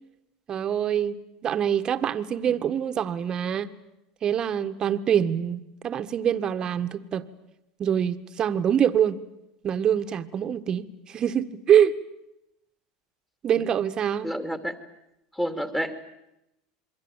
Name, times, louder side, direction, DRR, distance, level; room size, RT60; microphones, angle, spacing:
voice 1, 0.5-3.8 4.2-7.3 7.8-9.2 9.6-11.9 13.4-14.3, right 9 dB, 35° right, 1.6 m, -25 dB
voice 2, 14.2-14.8 15.3-16.0, equal, 10° left, 2.7 m, -30 dB
27.5 x 22.5 x 9.1 m
supercardioid pair, 110°, 2 cm